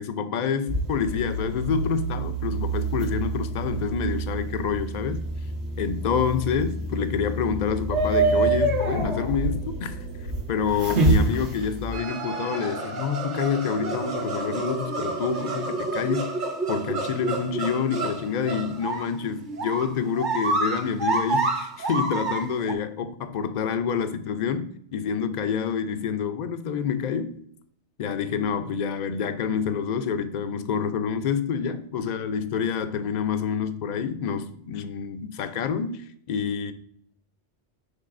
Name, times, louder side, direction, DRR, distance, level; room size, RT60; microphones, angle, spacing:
voice 1, 0.0-5.2 5.8-10.0 10.5-16.3 16.7-27.4 28.0-36.7, left 6 dB, 55° left, 0.5 m, -27 dB
sound 1, 0.7-12.0, right 2 dB, 70° right, 1.5 m, -27 dB
sound 2, 11.9-22.7, right 2 dB, 45° right, 1.0 m, -29 dB
9.9 x 4.0 x 2.5 m
omnidirectional pair, 1.2 m